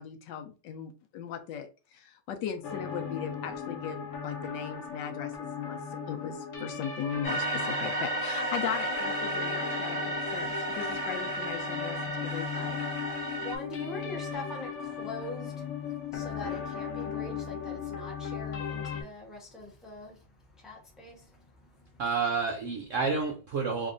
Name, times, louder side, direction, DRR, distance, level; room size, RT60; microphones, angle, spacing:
voice 1, 0.0-10.5 10.7-12.8, left 8 dB, 80° left, 1.3 m, -38 dB
sound 1, 2.6-19.0, left 6 dB, 60° left, 0.8 m, -37 dB
sound 2, 7.2-13.5, right 2 dB, 25° left, 0.9 m, -33 dB
voice 2, 13.4-21.9, left 2 dB, ahead, 0.5 m, -43 dB
voice 3, 22.0-23.9, right 5 dB, 75° right, 0.7 m, -29 dB
3.6 x 3.1 x 2.5 m
omnidirectional pair, 2.0 m